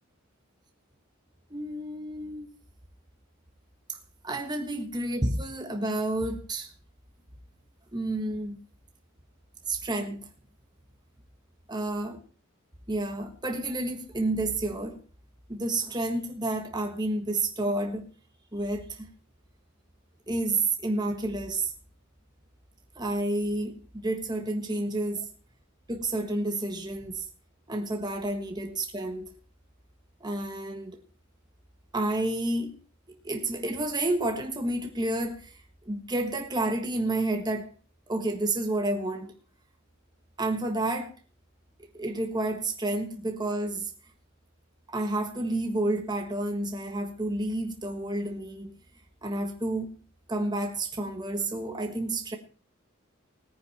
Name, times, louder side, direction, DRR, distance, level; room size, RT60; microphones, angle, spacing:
voice 1, 1.5-2.5 4.2-6.7 7.9-8.6 9.7-10.3 11.7-12.2 12.9-15.0 15.5-18.1 18.5-19.1 20.3-21.7 23.0-25.3 25.9-27.2 27.7-29.3 30.2-31.0 31.9-32.7 33.2-35.5 35.8-37.7 38.1-39.3 40.4-41.1 41.9-43.9 44.9-48.7 49.2-49.9 50.3-52.4, right 2 dB, 20° right, 1.5 m, -30 dB
17.5 x 9.7 x 4.3 m
head